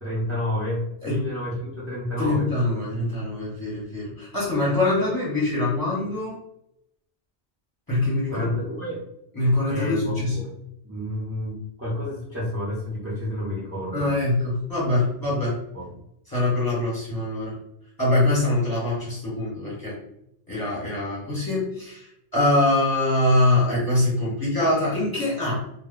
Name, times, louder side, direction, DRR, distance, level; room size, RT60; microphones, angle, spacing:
voice 1, 0.0-2.5 8.3-9.0 9.7-10.5 10.8-14.1 15.7-15.9, left 1 dB, 15° right, -7 dB, 0.6 m, -30 dB
voice 2, 2.2-6.4 7.9-8.4 9.3-10.4 13.9-15.6 16.3-17.6 18.0-20.0 20.5-25.6, left 2 dB, 20° left, -8 dB, 1.1 m, -23 dB
2.2 x 2.1 x 3.6 m, 0.77 s
omnidirectional pair, 1.1 m